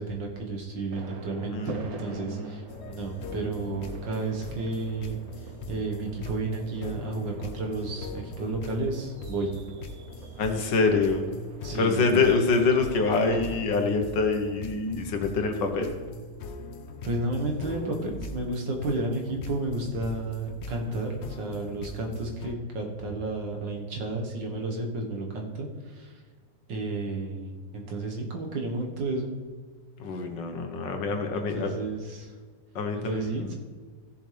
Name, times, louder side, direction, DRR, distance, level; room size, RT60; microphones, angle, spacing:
voice 1, 0.0-5.2 5.7-9.5 11.6-12.3 17.0-26.1 26.7-29.3 31.3-32.3 32.9-33.6, right 2 dB, 90° right, 1 dB, 2.1 m, -32 dB
sound 1, 0.9-13.7, right 4 dB, 60° right, 1.4 m, -45 dB
voice 2, 1.5-2.6 10.4-11.2 11.8-15.9 30.0-31.7 32.8-33.3, left 4 dB, 90° left, 5 dB, 1.8 m, -25 dB
Glass bass - music track, 2.7-22.5, left 2 dB, 55° left, 0.8 m, -41 dB
16.0 x 7.2 x 3.4 m, 1.5 s
omnidirectional pair, 1.9 m